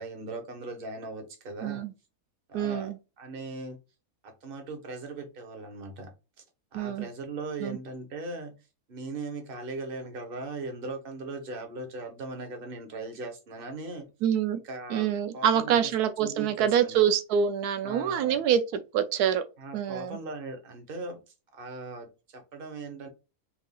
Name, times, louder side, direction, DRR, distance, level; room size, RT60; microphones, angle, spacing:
voice 1, 0.0-1.8 2.5-3.8 4.2-6.1 6.7-8.5 8.9-14.0 14.6-15.9 16.2-17.0 17.8-18.4 19.6-23.1, right 3 dB, 40° right, 1.2 m, -39 dB
voice 2, 2.5-3.0 6.7-7.1 7.6-7.8 14.2-14.6 14.9-18.6 18.9-19.4 19.7-20.2, right 9 dB, 90° right, 1.1 m, -26 dB
4.4 x 3.6 x 2.4 m
omnidirectional pair, 1.6 m